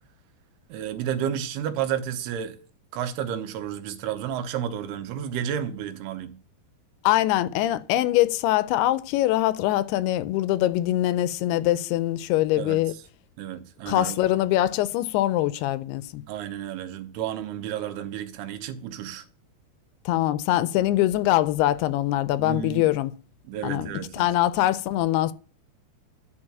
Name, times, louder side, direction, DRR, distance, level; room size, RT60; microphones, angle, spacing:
voice 1, 0.7-2.6 2.9-6.3 12.6-12.8 13.4-14.2 16.3-19.2 22.4-22.9 23.5-24.3, right 9 dB, 85° right, 2.8 m, -31 dB
voice 2, 7.0-12.9 13.9-16.2 20.1-23.1 23.6-25.3, left 14 dB, 85° left, 2.6 m, -23 dB
11.0 x 4.5 x 7.4 m
omnidirectional pair, 4.5 m